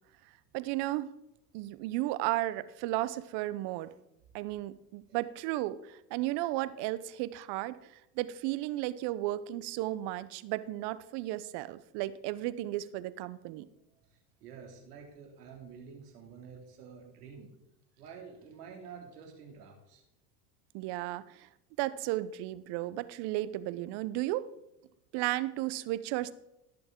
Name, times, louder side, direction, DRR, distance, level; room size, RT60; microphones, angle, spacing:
voice 1, 0.5-1.1 1.5-3.9 4.3-13.7 20.7-21.5 21.8-24.4 25.1-26.3, right 16 dB, 60° right, 15 dB, 0.9 m, -34 dB
voice 2, 14.0-17.5 18.0-20.0, right 6 dB, 85° right, 2 dB, 2.9 m, -49 dB
17.0 x 7.0 x 3.8 m, 0.88 s
hypercardioid pair, 80°, 45 cm